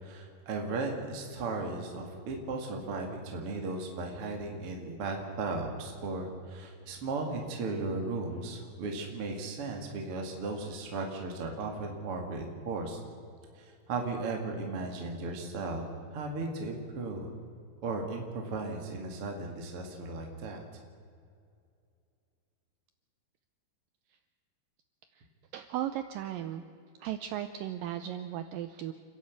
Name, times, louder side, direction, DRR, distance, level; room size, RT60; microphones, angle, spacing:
voice 1, 0.0-13.0 13.6-15.8 16.1-17.3 17.8-20.6, right 3 dB, 40° right, 2 dB, 2.3 m, -36 dB
voice 2, 25.5-26.7 27.0-28.9, right 11 dB, 90° right, 9 dB, 1.9 m, -36 dB
29.0 x 11.0 x 8.2 m, 2.4 s
omnidirectional pair, 4.8 m